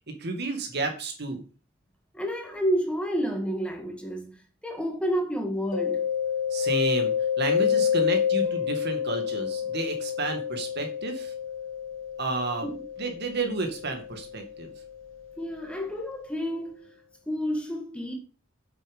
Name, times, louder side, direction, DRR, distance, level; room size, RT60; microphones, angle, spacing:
voice 1, 0.1-1.4 6.5-11.3 12.2-12.7 13.0-14.7, right 3 dB, 55° right, 2.2 m, -31 dB
voice 2, 2.1-4.3 4.6-6.0 12.6-12.8 15.4-16.9 17.3-18.1, equal, 5° left, 2.1 m, -30 dB
Mallet percussion, 5.7-15.3, left 8 dB, 85° left, 1.4 m, -29 dB
8.4 x 7.6 x 5.5 m
head